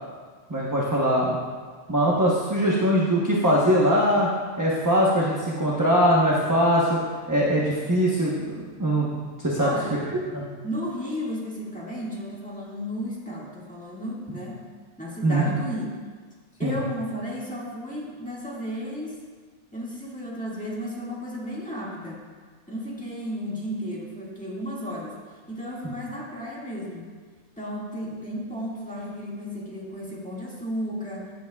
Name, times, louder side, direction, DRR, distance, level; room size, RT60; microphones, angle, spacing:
voice 1, 0.5-1.4 1.9-4.3 4.6-7.0 7.3-9.1 9.4-9.8 10.3-10.4 15.2-15.4 16.6-16.8, equal, 15° right, -5 dB, 1.0 m, -21 dB
voice 2, 9.6-10.0 10.6-14.6 15.0-15.9 16.6-19.2 19.7-22.2 22.7-25.2 25.5-27.0 27.6-31.3, equal, 5° left, -6 dB, 1.9 m, -33 dB
15.0 x 8.1 x 2.4 m, 1.5 s
omnidirectional pair, 1.3 m